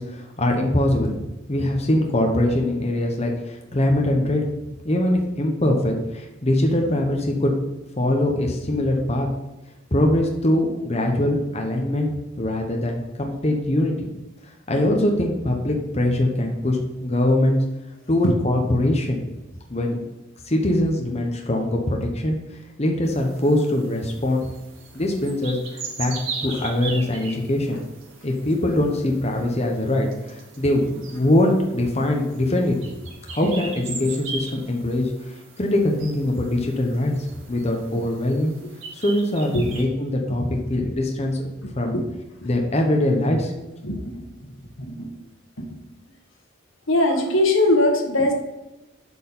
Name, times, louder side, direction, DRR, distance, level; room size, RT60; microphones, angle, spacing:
voice 1, 0.0-4.5 4.8-7.5 8.0-9.3 9.9-14.0 14.7-17.6 18.1-19.2 19.7-20.0 20.5-22.4 22.8-24.5 24.9-25.6 26.0-26.1 26.4-27.8 28.2-32.8 33.3-35.1 35.6-37.2 37.5-38.6 38.9-40.4 40.7-41.5 41.8-41.9 42.4-43.5, left 1 dB, 30° left, 1 dB, 1.0 m, -22 dB
sound 1, 23.0-39.8, right 4 dB, 90° right, 1.9 m, -39 dB
voice 2, 41.6-42.1 42.4-42.5 43.8-44.2 44.8-45.1 45.6-45.8 46.9-48.3, left 1 dB, 85° left, 2 dB, 1.5 m, -21 dB
8.2 x 4.6 x 5.5 m, 1.0 s
head